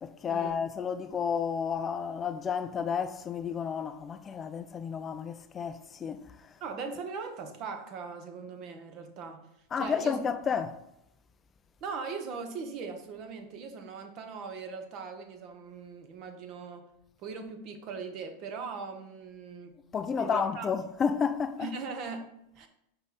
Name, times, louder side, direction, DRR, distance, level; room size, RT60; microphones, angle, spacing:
voice 1, 0.0-6.5 9.7-10.8 19.9-21.7, left 6 dB, 25° left, 0.4 m, -31 dB
voice 2, 6.6-9.5 9.8-10.2 11.8-16.9 17.2-19.7 20.2-20.7 21.6-22.7, right 5 dB, 50° right, 1.0 m, -40 dB
5.2 x 4.8 x 4.1 m
hypercardioid pair, 110°, 0 cm